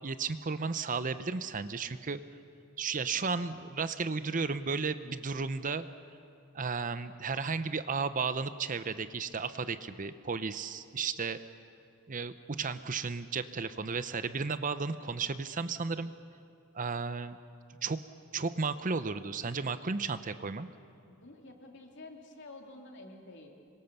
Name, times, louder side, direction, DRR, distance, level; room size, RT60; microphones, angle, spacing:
voice 1, 0.0-2.2 2.8-5.9 6.5-11.4 12.1-16.1 16.7-17.4 17.8-18.0 18.3-20.7, right 4 dB, 40° right, 12 dB, 0.7 m, -34 dB
voice 2, 21.1-23.5, left 2 dB, 55° left, 2 dB, 2.9 m, -50 dB
26.5 x 23.5 x 6.9 m, 2.5 s
head